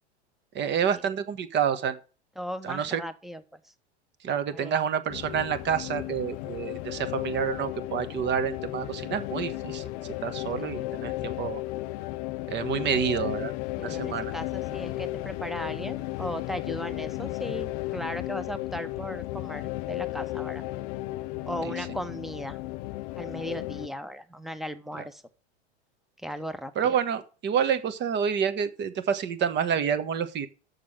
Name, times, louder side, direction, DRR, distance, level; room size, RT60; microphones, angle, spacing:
voice 1, 0.5-2.0 2.6-3.0 4.2-9.8 10.2-11.6 12.5-13.5 13.8-14.3 26.8-30.5, right 7 dB, 35° right, 11 dB, 1.2 m, -28 dB
voice 2, 2.4-3.6 4.5-4.7 10.6-10.9 13.8-20.6 21.5-22.6 23.2-25.2 26.2-27.0, equal, ahead, 11 dB, 0.9 m, -37 dB
sound 1, 5.1-23.9, left 18 dB, 50° left, 0.7 m, -34 dB
6.8 x 6.7 x 7.4 m, 0.36 s
hypercardioid pair, 105°, 33 cm